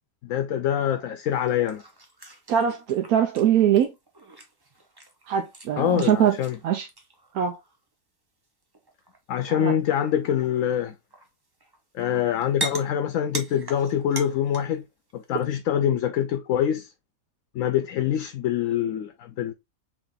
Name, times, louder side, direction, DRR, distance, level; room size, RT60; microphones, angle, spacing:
voice 1, 0.2-1.8 5.8-6.6 9.3-10.9 11.9-14.9 15.1-16.9 17.5-19.5, left 10 dB, 70° left, 0.9 m, -25 dB
sound 1, 1.2-7.8 8.7-9.2 9.4-10.6 11.1-12.0 12.3-14.8 15.1-15.4, right 2 dB, 25° right, 0.6 m, -40 dB
voice 2, 2.5-3.9 5.3-6.3 6.6-6.9 7.3-7.6 9.5-9.7, right 9 dB, 85° right, 1.1 m, -22 dB
3.9 x 2.9 x 3.4 m
omnidirectional pair, 1.5 m